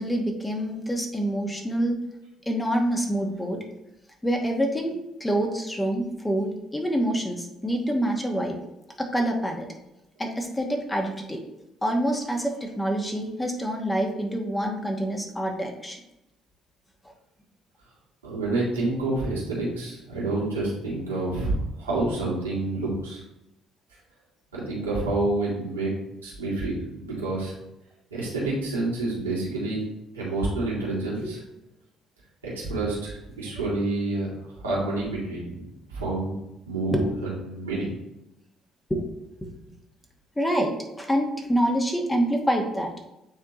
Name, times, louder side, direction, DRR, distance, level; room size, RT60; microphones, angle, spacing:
voice 1, 0.0-2.0 2.5-3.6 4.2-8.6 9.0-9.6 10.2-11.4 11.8-16.0 31.2-31.3 36.9-37.1 38.9-39.0 40.4-42.9, equal, 15° left, 2 dB, 1.2 m, -26 dB
voice 2, 18.2-23.2 24.5-25.9 26.2-27.5 28.1-29.8 30.1-31.4 32.4-34.3 34.6-36.3 36.7-37.9, right 2 dB, 85° right, -7 dB, 1.9 m, -28 dB
8.8 x 3.6 x 2.9 m, 0.90 s
figure-of-eight pair, 50°, 0 cm